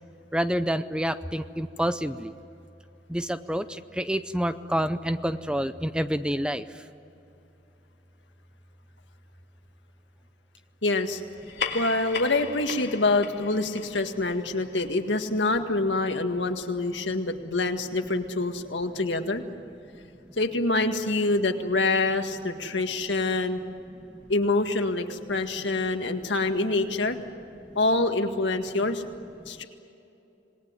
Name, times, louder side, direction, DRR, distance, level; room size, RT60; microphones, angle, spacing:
voice 1, 0.3-2.3 3.1-6.7, equal, 5° right, 11 dB, 0.5 m, -28 dB
voice 2, 10.8-11.2 11.7-19.4 20.4-23.6 24.3-27.2 27.8-29.1 29.5-29.6, left 2 dB, 90° left, 6 dB, 1.9 m, -26 dB
sound 1, 11.3-16.2, left 6 dB, 70° left, 2.3 m, -38 dB
27.0 x 20.0 x 9.6 m, 2.8 s
head